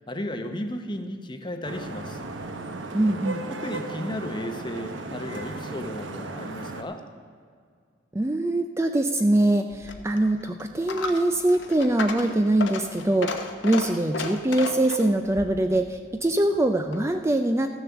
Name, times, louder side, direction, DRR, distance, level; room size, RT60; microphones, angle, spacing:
voice 1, 0.1-2.2 3.5-7.0, left 1 dB, 25° left, 6 dB, 0.9 m, -34 dB
Vehicle horn car horn honking / Traffic noise roadway noise, 1.6-6.8, right 2 dB, 80° right, 1.0 m, -35 dB
voice 2, 2.9-3.4 8.1-17.7, right 1 dB, 15° right, 6 dB, 0.4 m, -23 dB
Coin (dropping), 9.7-17.2, left 3 dB, 70° left, 1.0 m, -35 dB
14.0 x 7.2 x 7.0 m, 2.1 s
head